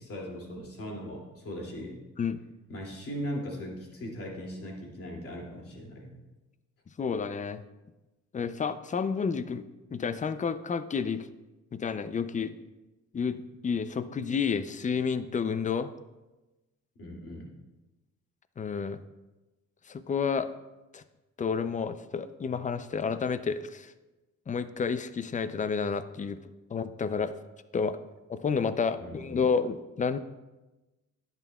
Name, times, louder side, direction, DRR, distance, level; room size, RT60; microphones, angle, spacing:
voice 1, 0.0-2.0 2.7-6.2 17.0-17.5 29.0-29.5, equal, 50° left, -2 dB, 2.5 m, -39 dB
voice 2, 7.0-7.6 8.3-9.6 9.9-11.3 11.7-12.5 13.1-15.9 18.6-19.0 19.9-20.5 20.9-21.0 21.4-23.9 24.5-26.4 26.7-27.3 27.7-28.0 28.3-30.2, left 5 dB, 25° left, 13 dB, 0.5 m, -30 dB
10.5 x 8.2 x 2.3 m, 1.1 s
cardioid pair, 90°, 30 cm